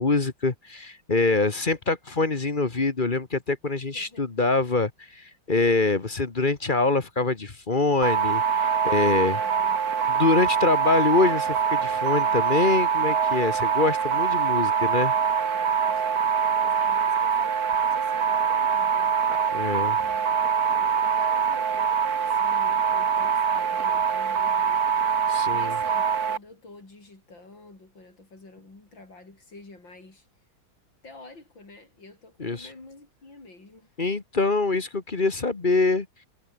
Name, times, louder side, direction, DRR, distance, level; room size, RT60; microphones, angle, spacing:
voice 1, 0.0-9.4 10.1-15.1 19.5-20.0 25.3-25.8 32.4-32.7 34.0-36.1, left 3 dB, 30° left, 1.4 m, -24 dB
voice 2, 3.6-4.3 8.8-10.1 15.5-19.5 19.9-30.3 31.0-34.0, left 2 dB, 90° left, 7.3 m, -49 dB
sound 1, 8.0-26.4, right 7 dB, 55° right, 2.0 m, -24 dB
omnidirectional pair, 2.0 m